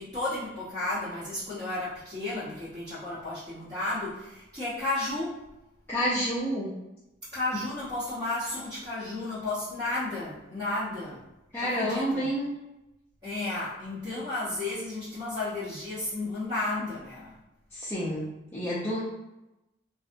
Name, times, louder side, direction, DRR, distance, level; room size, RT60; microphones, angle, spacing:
voice 1, 0.0-5.4 7.3-11.2 11.6-12.3 13.2-17.3, left 2 dB, 20° right, -13 dB, 0.8 m, -33 dB
voice 2, 5.9-6.8 11.5-12.5 17.7-19.0, equal, 10° left, -10 dB, 0.4 m, -29 dB
3.3 x 2.0 x 2.5 m, 0.94 s
head